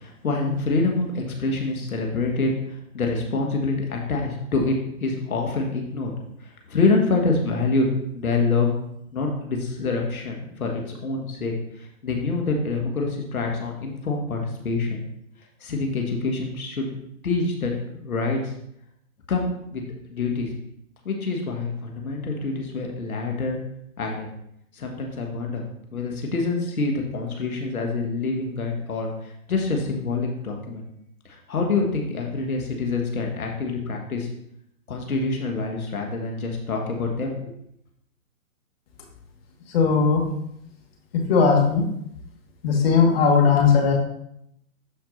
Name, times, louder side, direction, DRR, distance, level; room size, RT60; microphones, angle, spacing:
voice 1, 0.0-6.1 6.4-7.9 8.1-8.7 9.1-15.0 15.6-16.9 17.2-18.5 19.3-19.8 20.1-20.5 21.0-23.6 24.0-24.3 24.7-25.6 25.9-30.8 31.2-34.3 34.9-37.4, left 3 dB, 85° left, 1 dB, 1.6 m, -26 dB
voice 2, 39.7-40.2 41.3-41.8 42.6-43.9, left 5 dB, 45° left, 1 dB, 1.8 m, -18 dB
11.5 x 4.5 x 2.6 m, 0.76 s
hypercardioid pair, 145°, 42 cm